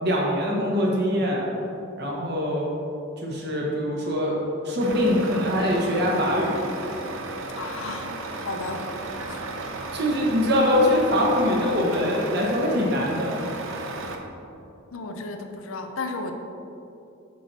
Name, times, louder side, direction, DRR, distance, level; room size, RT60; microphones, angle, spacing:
voice 1, 0.0-1.5 2.0-2.7 3.2-4.4 4.6-6.8 9.9-13.5, left 1 dB, 50° right, -3 dB, 1.3 m, -23 dB
Truck, 4.8-14.2, right 2 dB, 70° right, 0.7 m, -34 dB
voice 2, 7.6-8.1 8.4-8.9 9.3-9.4 14.9-16.3, left 3 dB, 80° left, 5 dB, 0.6 m, -33 dB
6.1 x 5.8 x 4.2 m, 2.8 s
head